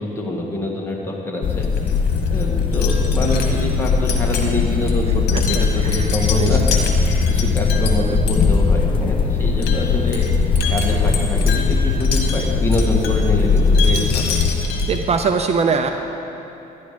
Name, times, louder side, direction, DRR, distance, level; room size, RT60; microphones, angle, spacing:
voice 1, 0.0-1.7 2.3-6.6 7.0-10.2 10.7-14.4, left 1 dB, 15° left, -1 dB, 1.8 m, -25 dB
sound 1, 1.4-14.6, left 5 dB, 30° left, 0.5 m, -20 dB
Wind chime, 1.5-15.2, left 5 dB, 70° left, 1.6 m, -25 dB
voice 2, 6.4-6.8 14.9-15.9, right 5 dB, 40° right, 6 dB, 0.6 m, -21 dB
11.5 x 10.5 x 5.0 m, 3.0 s
cardioid pair, 110°, 17 cm